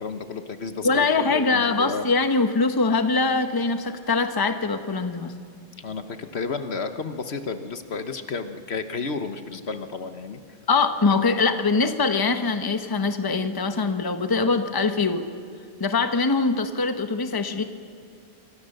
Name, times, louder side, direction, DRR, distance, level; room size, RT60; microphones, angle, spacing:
voice 1, 0.0-2.0 5.8-10.4, left 4 dB, 60° left, 8 dB, 1.3 m, -32 dB
voice 2, 0.8-5.3 10.7-15.3 15.8-17.6, left 4 dB, 20° left, 7 dB, 1.0 m, -23 dB
25.0 x 24.5 x 6.7 m, 2.5 s
omnidirectional pair, 1.2 m